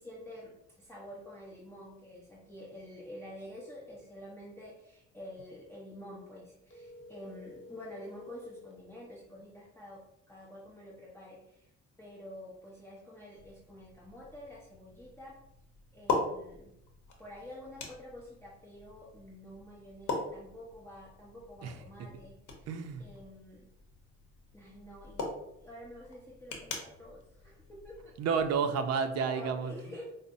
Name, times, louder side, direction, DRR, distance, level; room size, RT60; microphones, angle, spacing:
voice 1, 0.0-10.0 10.3-11.7 12.0-15.4 15.9-16.7 17.2-23.7 24.5-25.3 25.6-28.2 29.3-30.0, left 1 dB, 10° left, -6 dB, 0.8 m, -49 dB
sound 1, 6.7-8.8, left 2 dB, 40° left, 1.1 m, -50 dB
sound 2, 13.4-28.6, left 3 dB, 80° left, 0.8 m, -42 dB
voice 2, 22.7-23.0 28.2-29.7, right 6 dB, 60° right, 7 dB, 0.5 m, -30 dB
5.1 x 2.0 x 2.5 m, 0.82 s
cardioid pair, 90°, 30 cm